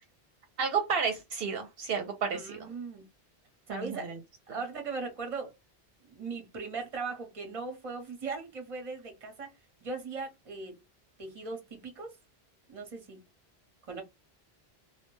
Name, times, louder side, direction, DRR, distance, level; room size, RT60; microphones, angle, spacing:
voice 1, 0.6-2.7 3.7-4.2, right 6 dB, 70° right, 0.8 m, -32 dB
voice 2, 2.3-3.0 3.7-4.1 4.5-5.6 6.0-9.5 9.8-10.8 11.2-12.2 12.7-13.2 13.9-14.0, right 4 dB, 35° right, 0.8 m, -39 dB
2.2 x 2.1 x 3.0 m
omnidirectional pair, 1.0 m